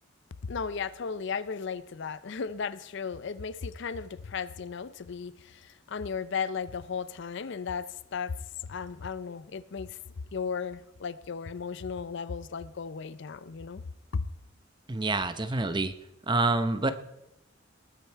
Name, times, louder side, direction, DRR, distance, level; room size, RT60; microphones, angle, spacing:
voice 1, 0.4-8.3 8.7-10.0 10.3-13.8 14.1-14.3, left 5 dB, 65° left, 16 dB, 0.5 m, -35 dB
voice 2, 14.9-15.9 16.3-16.9, right 3 dB, 25° right, 11 dB, 0.7 m, -27 dB
19.5 x 9.0 x 4.6 m, 0.88 s
head